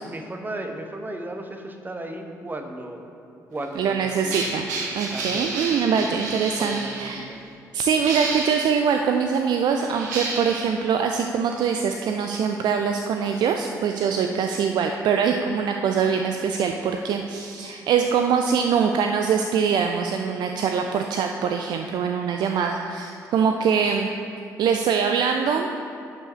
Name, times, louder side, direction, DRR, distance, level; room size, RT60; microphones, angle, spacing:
voice 1, 0.0-3.1 3.5-4.5 5.1-5.6 5.9-6.2 6.6-7.5, right 1 dB, 20° right, 5 dB, 1.0 m, -35 dB
sound 1, 3.6-7.1 7.9-8.7 9.7-10.7 11.5-11.6, right 3 dB, 75° right, 1.0 m, -31 dB
voice 2, 3.8-4.7 5.0-7.3 7.7-24.1 24.6-25.7, right 6 dB, 50° right, 4 dB, 0.4 m, -23 dB
11.5 x 5.6 x 4.4 m, 2.5 s
figure-of-eight pair, 45°, 9 cm